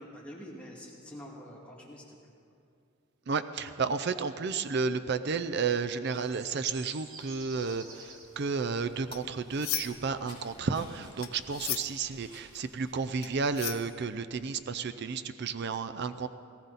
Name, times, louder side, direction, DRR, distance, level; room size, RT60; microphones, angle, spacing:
voice 1, 0.0-2.3, equal, 5° left, -4 dB, 2.1 m, -46 dB
voice 2, 3.3-16.3, right 5 dB, 50° right, 10 dB, 0.5 m, -32 dB
sound 1, 6.1-12.4, right 3 dB, 70° right, 2.6 m, -53 dB
sound 2, 8.9-10.2 10.5-14.5, left 13 dB, 75° left, 0.8 m, -38 dB
sound 3, 9.3-14.2, equal, 20° right, 4.0 m, -58 dB
18.5 x 16.0 x 4.1 m, 2.4 s
head